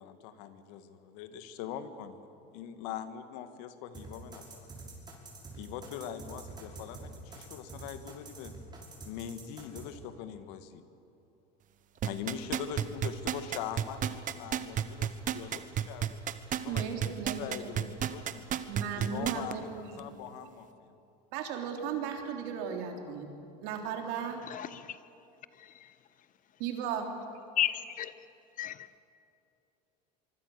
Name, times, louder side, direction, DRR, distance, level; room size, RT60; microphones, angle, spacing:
voice 1, 0.0-4.7 5.6-8.5 9.1-10.8 12.0-16.2 16.6-17.0 17.4-18.4 19.0-21.0, left 9 dB, 75° left, 1.8 m, -42 dB
sound 1, 3.9-9.8, right 3 dB, 20° right, 6.1 m, -46 dB
sound 2, 12.0-19.5 20.0-20.1, right 10 dB, 40° right, 1.3 m, -31 dB
voice 2, 16.7-17.8 18.7-20.0 21.3-23.3 23.6-24.4 26.6-27.1, right 7 dB, 75° right, 3.6 m, -36 dB
voice 3, 24.5-25.0 25.5-26.0 27.6-28.1 28.6-28.9, left 11 dB, 40° left, 1.1 m, -34 dB
24.5 x 24.5 x 6.7 m
supercardioid pair, 115°, 20 cm